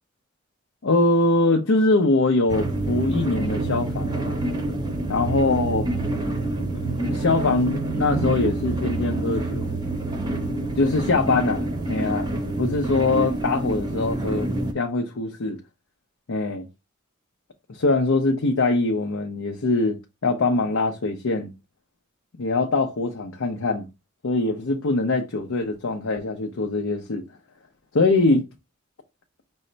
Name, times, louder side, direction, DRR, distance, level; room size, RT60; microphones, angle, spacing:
voice 1, 0.8-4.4 5.1-5.9 6.8-9.7 10.7-12.3 12.6-14.5 14.7-15.6 16.3-16.7 17.7-21.5 22.4-23.9 24.2-27.2 27.9-28.4, left 2 dB, 70° left, 0.6 m, -23 dB
sound 1, 2.5-14.7, right 2 dB, 20° right, 0.7 m, -27 dB
5.4 x 2.2 x 3.8 m
head